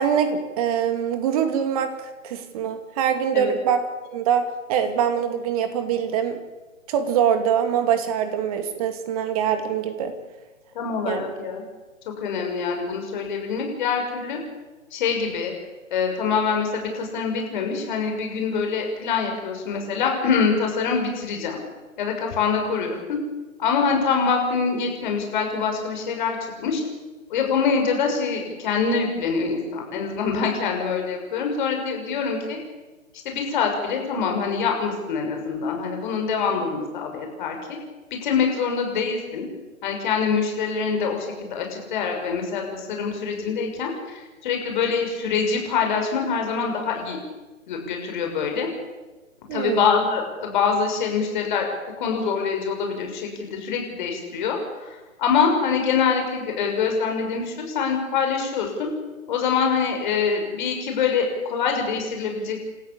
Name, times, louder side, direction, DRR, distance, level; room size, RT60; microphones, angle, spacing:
voice 1, 0.0-3.8 4.1-4.4 4.7-6.4 6.9-10.1 11.1-11.2 49.5-49.9, right 8 dB, 25° right, 8 dB, 2.5 m, -23 dB
voice 2, 10.7-11.6 12.0-14.4 14.9-15.5 15.9-21.6 22.0-23.2 23.6-26.8 27.3-32.6 33.2-37.8 38.1-39.4 39.8-47.2 47.7-48.7 49.5-51.7 52.0-58.9 59.3-62.6, left 5 dB, 35° left, 3 dB, 6.5 m, -25 dB
29.0 x 14.0 x 8.8 m, 1.2 s
figure-of-eight pair, 140°, 40 cm